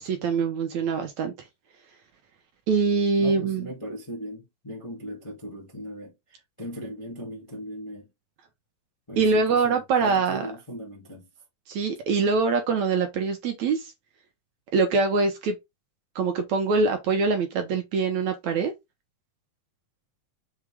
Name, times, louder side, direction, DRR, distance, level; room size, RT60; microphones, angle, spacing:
voice 1, 0.0-1.3 2.7-3.7 9.2-10.5 11.7-13.9 14.7-15.6 16.2-18.7, right 4 dB, 65° right, 2.1 m, -24 dB
voice 2, 3.2-8.1 9.1-11.3, equal, 15° left, 1.1 m, -38 dB
6.3 x 4.4 x 3.6 m
omnidirectional pair, 4.0 m